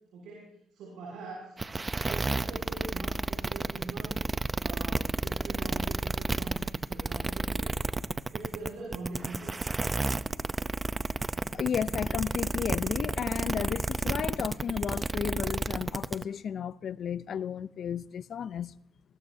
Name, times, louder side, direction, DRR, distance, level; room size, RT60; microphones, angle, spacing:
voice 1, 0.1-1.5 1.9-4.1 4.6-6.6 6.8-7.8 8.3-9.5, right 3 dB, 85° right, 6.7 m, -43 dB
sound 1, 1.6-16.2, right 3 dB, 25° right, 0.7 m, -31 dB
voice 2, 11.5-18.8, left 8 dB, 60° left, 0.5 m, -33 dB
23.0 x 19.0 x 2.7 m
cardioid pair, 90°, 0 cm